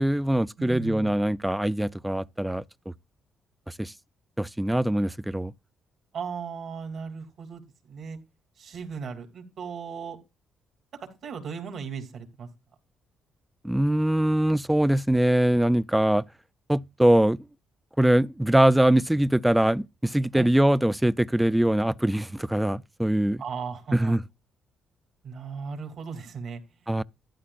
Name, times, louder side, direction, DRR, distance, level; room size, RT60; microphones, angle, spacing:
voice 1, 0.0-2.9 3.7-3.9 4.4-5.5 13.6-16.2 16.7-17.4 18.0-23.4 23.9-24.2 26.9-27.0, right 1 dB, 5° right, 0.5 m, -23 dB
voice 2, 0.6-1.1 6.1-7.6 7.9-8.2 8.6-10.2 11.0-12.5 20.3-20.5 23.4-24.2 25.2-26.6, right 6 dB, 60° right, 3.0 m, -36 dB
12.5 x 11.0 x 2.5 m
cardioid pair, 90°, 0 cm